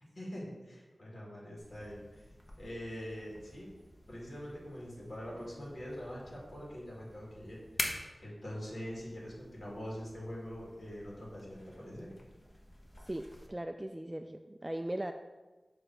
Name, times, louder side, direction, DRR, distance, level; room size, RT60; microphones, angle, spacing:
voice 1, 0.1-2.2 2.6-3.7 4.1-7.6 8.2-12.1, equal, 60° left, -5 dB, 2.2 m, -44 dB
sound 1, 1.6-13.5, left 1 dB, 25° left, 1.1 m, -47 dB
voice 2, 13.0-15.1, right 1 dB, 20° right, 6 dB, 0.3 m, -39 dB
6.9 x 3.3 x 5.5 m, 1.2 s
wide cardioid pair, 50°, 0 cm